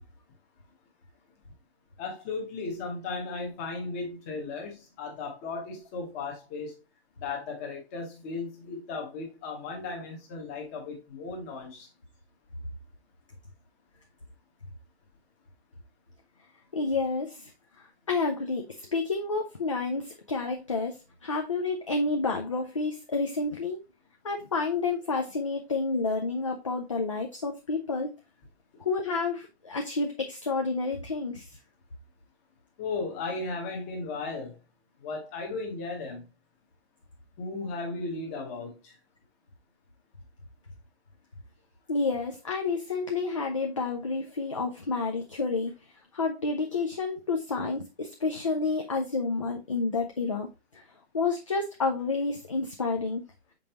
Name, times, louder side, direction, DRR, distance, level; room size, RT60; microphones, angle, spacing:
voice 1, 2.0-6.8 7.2-11.9 32.8-34.6 35.0-36.2 37.4-38.9, left 3 dB, 15° left, 0.9 m, -36 dB
voice 2, 16.7-17.5 17.8-23.8 24.2-28.1 28.8-31.6 41.9-45.7 46.1-50.8 51.1-53.2, left 3 dB, 30° left, 0.4 m, -30 dB
6.3 x 5.2 x 2.9 m
hypercardioid pair, 175°, 33 cm